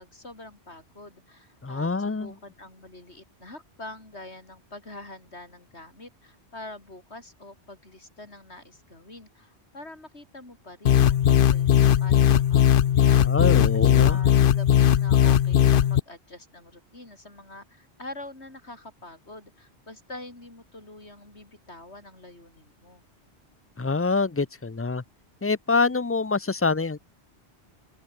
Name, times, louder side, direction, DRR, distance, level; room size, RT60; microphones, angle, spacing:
voice 1, 0.0-13.3 13.8-23.0, left 2 dB, 75° left, 5.8 m, -45 dB
voice 2, 1.6-2.3 13.2-14.2 23.8-25.0 25.4-27.0, left 4 dB, 20° left, 0.4 m, -25 dB
sound 1, 10.9-16.0, left 10 dB, 60° left, 0.8 m, -18 dB
open air
omnidirectional pair, 1.1 m